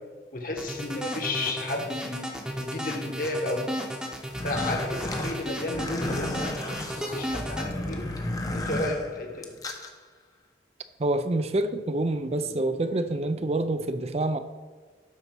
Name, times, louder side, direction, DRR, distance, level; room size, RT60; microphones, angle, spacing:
voice 1, 0.3-3.8 4.4-8.0 8.5-9.5, left 2 dB, 50° left, 2 dB, 1.5 m, -32 dB
sound 1, 0.6-7.7, equal, 5° right, 0.9 m, -34 dB
sound 2, 4.2-9.9, left 1 dB, 20° left, 0.8 m, -33 dB
voice 2, 11.0-14.4, right 2 dB, 35° right, 9 dB, 0.4 m, -27 dB
12.0 x 4.1 x 6.0 m, 1.4 s
head